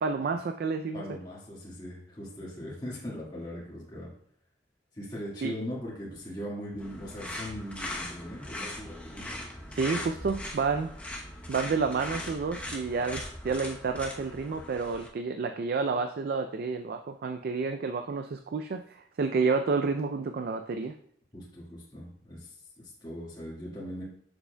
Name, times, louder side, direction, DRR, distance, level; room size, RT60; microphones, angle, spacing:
voice 1, 0.0-1.0 5.4-5.5 9.7-10.9 11.5-18.8 19.2-20.9, right 4 dB, 55° right, 7 dB, 0.4 m, -30 dB
voice 2, 0.9-4.1 4.9-9.3 21.3-24.0, equal, 25° left, -7 dB, 1.7 m, -40 dB
sound 1, 6.8-15.1, left 1 dB, 10° left, 0.8 m, -40 dB
7.0 x 6.7 x 2.2 m, 0.62 s
head